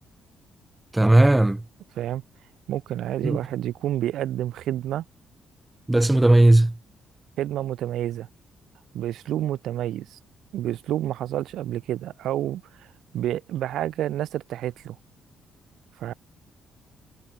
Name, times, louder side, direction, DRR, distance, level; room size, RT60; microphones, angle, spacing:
voice 1, 0.9-1.6 3.2-3.4 5.9-6.7, right 1 dB, 10° right, 1.7 m, -16 dB
voice 2, 2.7-5.0 7.4-8.3 8.9-10.2 10.5-12.9 13.1-15.0 16.0-16.1, right 12 dB, 80° right, 1.6 m, -29 dB
cardioid pair, 90°, 0 cm